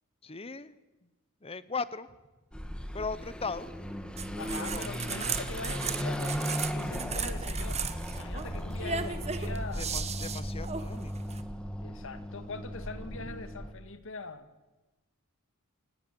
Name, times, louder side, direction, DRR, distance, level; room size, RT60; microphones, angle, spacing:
voice 1, 0.2-0.8 1.4-2.1 2.9-3.7 4.5-4.9 8.9-11.3, left 4 dB, 25° left, 16 dB, 0.9 m, -39 dB
Car passing by / Accelerating revving vroom, 2.5-13.7, equal, 5° left, 1.6 m, -36 dB
sound 1, 4.2-11.4, right 6 dB, 30° right, 1.4 m, -37 dB
voice 2, 4.4-10.0 11.8-14.5, left 3 dB, 60° left, 10 dB, 1.9 m, -42 dB
29.0 x 17.0 x 7.7 m, 1.1 s
head